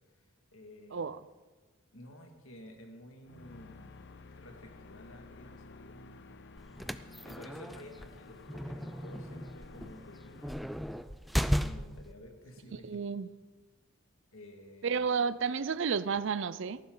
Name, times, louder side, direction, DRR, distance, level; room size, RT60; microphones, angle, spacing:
voice 1, 0.5-1.1 1.9-4.1 4.4-6.3 7.2-10.4 11.4-13.0 14.3-15.1, left 1 dB, 70° left, 3 dB, 2.1 m, -52 dB
sound 1, 3.2-10.5, left 3 dB, 55° left, 0.6 m, -52 dB
sound 2, 6.6-12.1, equal, ahead, 0.3 m, -35 dB
voice 2, 12.9-13.3 14.8-16.8, right 5 dB, 60° right, 16 dB, 0.5 m, -31 dB
18.0 x 14.5 x 3.9 m, 1.3 s
head